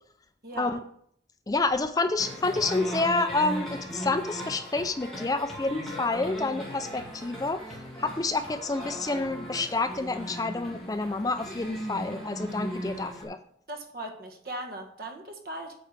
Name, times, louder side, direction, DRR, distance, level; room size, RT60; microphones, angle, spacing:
voice 1, 0.4-0.8 13.7-15.7, right 1 dB, 55° right, 3 dB, 1.5 m, -38 dB
voice 2, 1.5-13.4, left 3 dB, 20° left, 9 dB, 0.4 m, -29 dB
sound 1, 2.2-13.2, equal, ahead, 2.2 m, -38 dB
8.5 x 4.6 x 6.5 m, 0.66 s
head